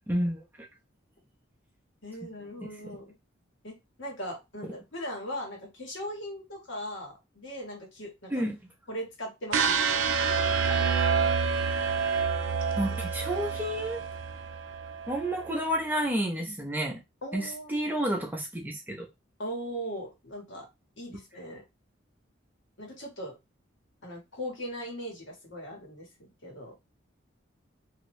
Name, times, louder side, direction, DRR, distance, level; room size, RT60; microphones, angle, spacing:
voice 1, 0.1-0.4 2.6-2.7 8.3-8.5 12.8-14.0 15.1-17.0 17.3-19.1, equal, 10° right, 0.6 m, -30 dB
voice 2, 2.0-3.1 3.6-8.4 8.9-11.2 17.2-17.9 19.4-20.7 21.0-21.6 22.8-23.3 24.0-26.7, equal, 65° left, 1.4 m, -39 dB
sound 1, 9.5-15.6, right 5 dB, 75° right, 0.5 m, -28 dB
2.8 x 2.6 x 3.1 m
head